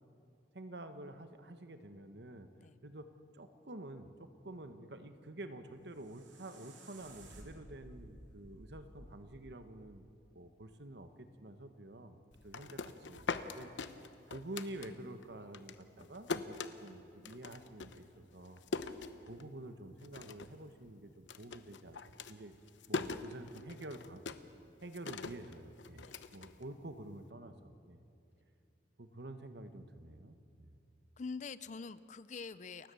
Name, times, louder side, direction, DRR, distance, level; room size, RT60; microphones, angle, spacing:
voice 1, 0.5-2.5 2.8-3.1 3.3-10.1 10.3-13.7 14.3-18.6 19.2-22.0 22.3-22.6 22.9-24.2 24.8-26.0 26.3-27.5 27.9-28.0 29.0-30.7, right 1 dB, 65° right, 9 dB, 1.3 m, -49 dB
sound 1, 5.7-10.7, right 1 dB, 85° right, 3.3 m, -56 dB
sound 2, 12.3-15.3 15.5-19.7 20.0-20.6 20.9-27.1, left 4 dB, 85° left, 0.9 m, -42 dB
voice 2, 31.2-32.9, left 4 dB, 40° left, 16 dB, 0.5 m, -45 dB
29.5 x 16.0 x 6.9 m, 2.6 s
head